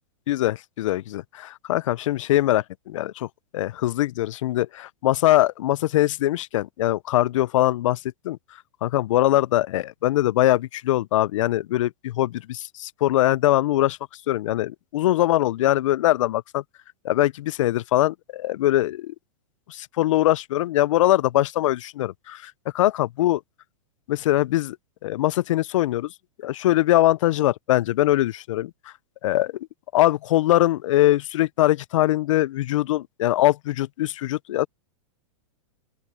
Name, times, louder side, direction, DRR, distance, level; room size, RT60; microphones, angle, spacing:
voice 1, 0.3-3.3 3.5-8.0 8.2-8.4 8.8-14.0 14.3-16.6 17.0-19.1 19.7-23.4 24.1-24.8 25.0-26.1 26.4-28.7 29.2-29.5 29.9-34.7, left 15 dB, 75° left, 0.4 m, -22 dB
open air
supercardioid pair, 155°, 17 cm